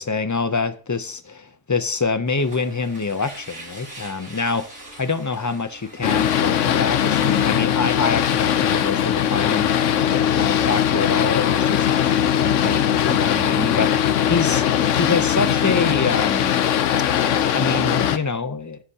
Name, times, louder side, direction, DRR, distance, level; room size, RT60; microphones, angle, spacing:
voice 1, 0.0-4.7 5.0-9.7 10.3-11.9 12.4-13.9 14.2-14.6 14.9-16.6 17.5-18.8, left 4 dB, 25° left, 0.4 m, -25 dB
sound 1, 2.3-7.2, right 1 dB, 80° right, 4.8 m, -43 dB
Boat Water vehicle, 6.0-18.2, left 9 dB, 80° left, 1.1 m, -20 dB
16.0 x 9.8 x 2.8 m
omnidirectional pair, 1.3 m